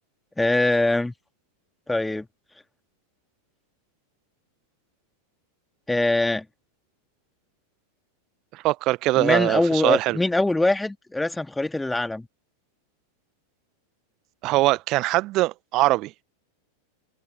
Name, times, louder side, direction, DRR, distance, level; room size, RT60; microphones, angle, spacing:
voice 1, 0.4-1.1 1.9-2.3 5.9-6.4 9.2-12.3, left 2 dB, 5° left, 2.1 m, -23 dB
voice 2, 8.5-10.2 14.4-16.1, right 18 dB, 40° right, 0.9 m, -22 dB
figure-of-eight pair, 90°, 0 cm